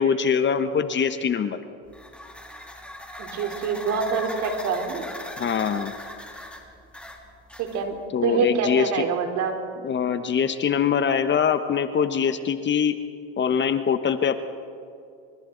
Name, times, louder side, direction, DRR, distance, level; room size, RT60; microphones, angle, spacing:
voice 1, 0.0-1.6 5.4-5.9 8.1-9.0 9.8-12.9 13.4-14.4, left 7 dB, 35° left, 10 dB, 1.2 m, -23 dB
sound 1, 1.9-8.1, left 1 dB, 5° left, 3.5 m, -39 dB
voice 2, 3.2-5.0 7.6-8.0 8.2-9.6, right 5 dB, 60° right, 4 dB, 3.9 m, -26 dB
29.0 x 26.0 x 4.0 m, 2.5 s
supercardioid pair, 85°, 32 cm